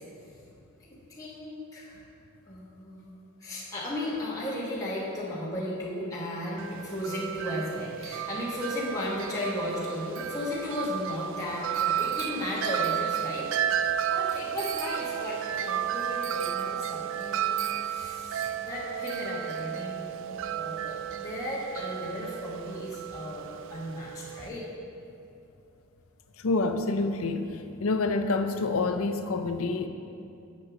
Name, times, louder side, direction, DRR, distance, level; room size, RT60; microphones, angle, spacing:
voice 1, 0.9-2.0 2.5-13.5 14.1-17.6 17.8-24.7, left 1 dB, 15° left, -7 dB, 1.4 m, -35 dB
Wind chime, 6.6-24.5, right 10 dB, 60° right, 0.3 m, -33 dB
voice 2, 26.4-27.5 27.8-29.9, left 3 dB, 70° left, 8 dB, 0.6 m, -27 dB
7.8 x 6.5 x 5.9 m, 2.6 s
head